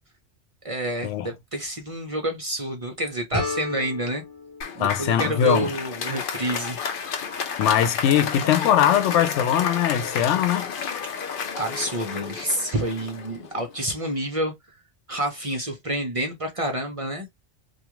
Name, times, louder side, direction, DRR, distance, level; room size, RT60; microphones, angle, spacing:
voice 1, 0.6-4.2 4.7-6.8 11.6-14.5 15.1-17.3, right 1 dB, 40° right, 0.6 m, -28 dB
sound 1, 3.3-6.2, left 2 dB, 25° left, 1.1 m, -34 dB
Applause, 4.6-13.9, left 6 dB, 55° left, 0.7 m, -32 dB
voice 2, 4.8-5.7 7.6-10.7, left 10 dB, 90° left, 0.9 m, -21 dB
2.4 x 2.4 x 2.9 m
omnidirectional pair, 1.2 m